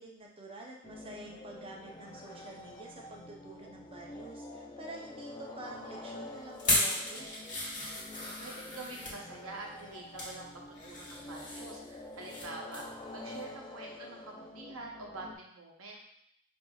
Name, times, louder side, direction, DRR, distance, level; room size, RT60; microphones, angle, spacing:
voice 1, 0.0-7.2, right 2 dB, 25° right, -1 dB, 0.6 m, -48 dB
sound 1, 0.8-15.3, left 2 dB, 20° left, 0.4 m, -47 dB
sound 2, 6.6-9.2 9.8-10.4 10.7-12.5 12.7-12.9 13.3-13.4, left 1 dB, 40° left, 1.4 m, -35 dB
voice 2, 8.4-12.8 13.1-16.0, right 3 dB, 75° right, 0 dB, 0.8 m, -46 dB
5.4 x 2.6 x 2.3 m, 0.73 s
head